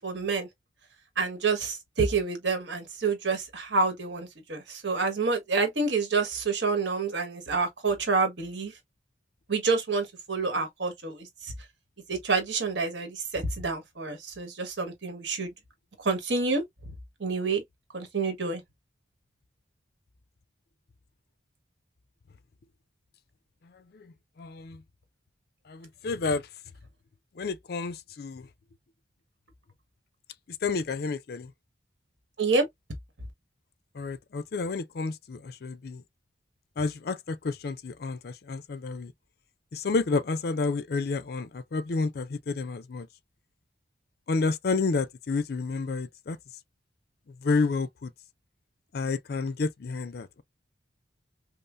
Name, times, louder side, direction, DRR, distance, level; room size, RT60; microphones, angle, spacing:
voice 1, 0.0-0.5 1.2-8.7 9.5-11.5 12.1-15.5 16.0-16.6 17.2-17.6 17.9-18.6 32.4-32.6, right 4 dB, 65° right, 1.4 m, -28 dB
voice 2, 23.6-24.8 25.7-26.5 27.4-28.5 30.5-31.5 33.9-36.0 36.8-39.1 39.7-43.1 44.3-46.4 47.3-48.1 48.9-50.4, left 4 dB, 55° left, 0.4 m, -30 dB
5.4 x 2.0 x 2.5 m
head